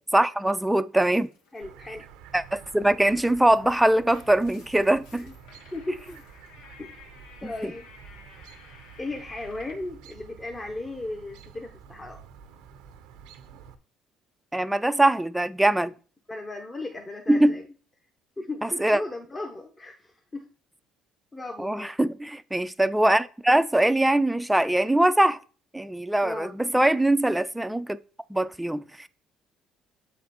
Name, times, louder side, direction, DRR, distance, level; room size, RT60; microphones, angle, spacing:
voice 1, 0.1-1.3 2.3-5.3 7.4-7.7 14.5-15.9 17.3-17.6 18.6-19.0 21.6-25.4 25.7-28.0 28.3-29.1, right 1 dB, 5° right, 0.5 m, -22 dB
sound 1, 1.0-1.6 3.0-9.9, left 4 dB, 80° left, 1.1 m, -53 dB
voice 2, 1.5-2.0 5.1-5.3 5.7-6.0 7.4-7.9 9.0-12.2 16.3-17.6 18.4-20.5 21.3-21.9 26.2-26.6, left 2 dB, 25° left, 1.0 m, -36 dB
Chirp tweet, 1.6-13.7, right 7 dB, 80° right, 0.7 m, -49 dB
7.5 x 4.1 x 4.2 m
hypercardioid pair, 65°, 0 cm